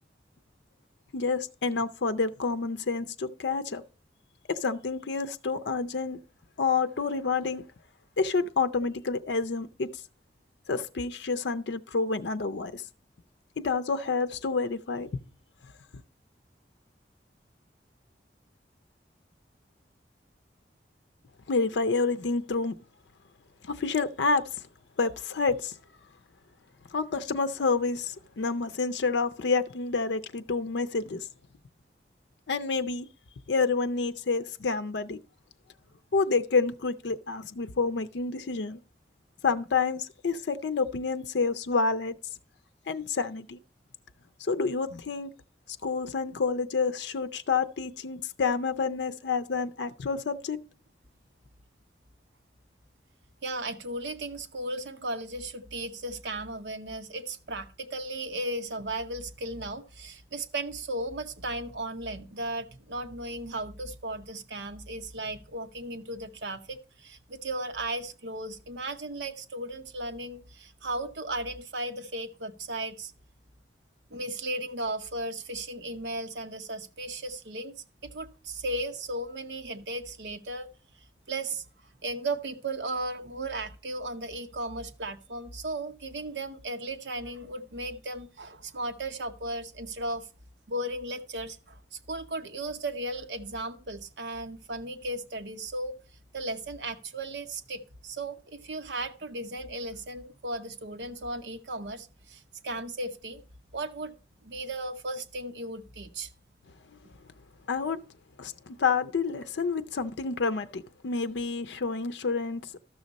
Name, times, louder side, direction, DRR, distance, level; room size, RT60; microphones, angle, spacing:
voice 1, 1.1-3.8 4.5-6.2 6.6-7.6 8.2-10.0 10.7-12.8 13.6-15.2 21.5-22.7 23.6-24.5 25.0-25.8 26.9-31.3 32.5-33.1 33.5-35.2 36.1-38.8 39.4-42.2 42.9-43.6 44.4-45.3 45.8-50.6 107.7-108.0 108.4-112.8, left 4 dB, 80° left, 0.5 m, -28 dB
voice 2, 53.4-73.1 74.1-77.7 78.0-80.7 81.3-81.6 82.0-90.3 90.7-96.0 96.3-103.4 103.7-104.1 104.4-106.3, right 2 dB, 80° right, 0.9 m, -36 dB
13.0 x 6.3 x 4.0 m
head